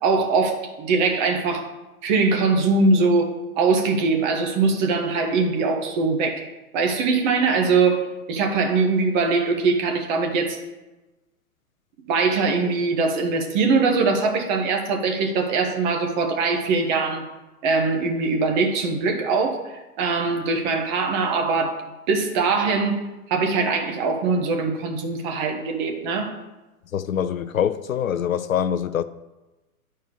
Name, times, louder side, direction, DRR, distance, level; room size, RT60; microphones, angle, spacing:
voice 1, 0.0-1.7 2.0-6.5 6.7-10.6 12.1-17.2 17.6-21.8 22.1-23.0 23.3-26.3, right 4 dB, 30° right, 1.2 m, -22 dB
voice 2, 26.9-29.0, left 9 dB, 65° left, 0.5 m, -24 dB
10.5 x 4.5 x 5.1 m
figure-of-eight pair, 110°, 45 cm